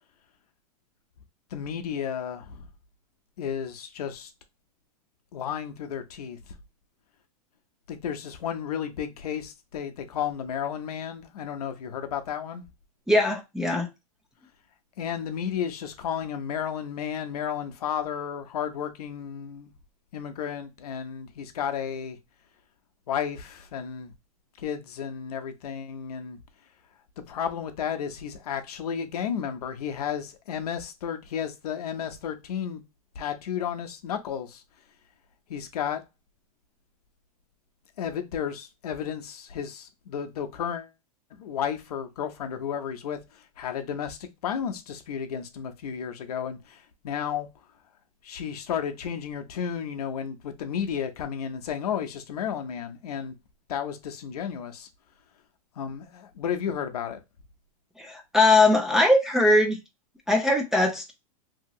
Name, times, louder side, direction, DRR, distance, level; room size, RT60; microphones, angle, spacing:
voice 1, 1.5-2.6 3.4-4.3 5.3-6.4 7.9-12.6 15.0-19.7 20.1-22.2 23.1-24.1 24.6-26.4 27.3-32.8 33.2-34.6 35.5-36.0 38.0-40.9 41.3-43.2 43.6-47.5 48.2-53.4 53.7-54.9 55.8-57.2, left 8 dB, 80° left, 0.7 m, -32 dB
voice 2, 13.1-13.9 58.0-59.8 60.3-61.1, left 2 dB, ahead, 0.3 m, -21 dB
2.9 x 2.8 x 2.7 m
supercardioid pair, 145°, 19 cm